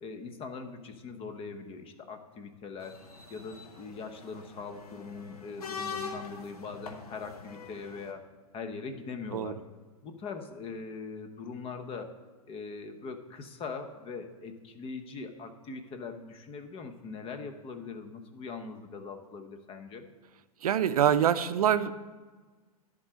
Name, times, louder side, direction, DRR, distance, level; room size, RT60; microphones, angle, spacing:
voice 1, 0.0-3.0 3.3-8.3 8.5-9.6 10.0-12.1 12.5-20.0, left 4 dB, 30° left, 8 dB, 1.0 m, -41 dB
sound 1, 2.8-8.1, left 5 dB, 80° left, 1.1 m, -43 dB
voice 2, 20.6-21.9, right 9 dB, 75° right, 13 dB, 0.6 m, -25 dB
11.0 x 3.8 x 7.4 m, 1.3 s
hypercardioid pair, 105°, 19 cm